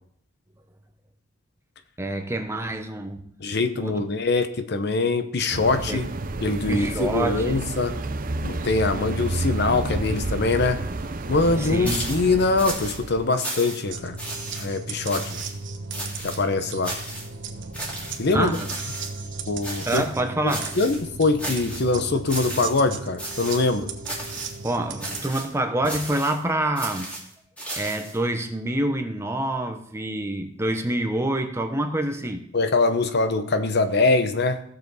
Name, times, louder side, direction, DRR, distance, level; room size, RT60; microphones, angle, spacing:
voice 1, 2.0-3.2 3.8-4.0 5.9-6.0 6.7-7.6 11.6-12.0 18.3-18.7 19.9-20.7 24.6-27.1 27.8-32.4, right 1 dB, 15° right, 5 dB, 1.0 m, -26 dB
voice 2, 3.4-6.1 6.4-7.9 8.4-10.8 11.3-14.2 14.6-15.5 16.2-17.0 18.2-18.6 19.5-20.0 20.4-23.9 32.5-34.6, left 3 dB, 55° left, 9 dB, 0.8 m, -23 dB
sound 1, 5.5-13.3, right 2 dB, 45° right, 0.7 m, -30 dB
sound 2, 11.8-12.3 12.6-13.0 13.4-13.9 14.2-14.7 15.0-15.5 15.9-16.4 16.8-17.3 17.7-18.2 18.5-19.1 19.6-20.1 20.5-21.0 21.4-21.9 22.3-22.9 23.2-23.7 24.0-24.6 25.0-25.5 25.8-26.4 26.8-28.2, right 1 dB, 5° left, 2.5 m, -34 dB
sound 3, 13.9-25.2, right 4 dB, 60° right, 1.1 m, -36 dB
15.5 x 7.0 x 4.1 m, 0.66 s
head